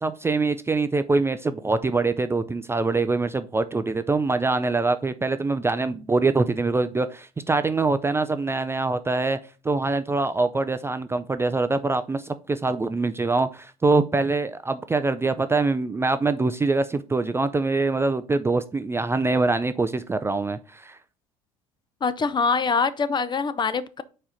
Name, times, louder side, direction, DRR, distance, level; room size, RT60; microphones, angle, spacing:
voice 1, 0.0-9.4 9.6-21.0, right 3 dB, 15° right, 0.4 m, -24 dB
voice 2, 22.0-24.0, left 5 dB, 25° left, 0.6 m, -24 dB
4.7 x 4.3 x 5.0 m
figure-of-eight pair, 60°, 17 cm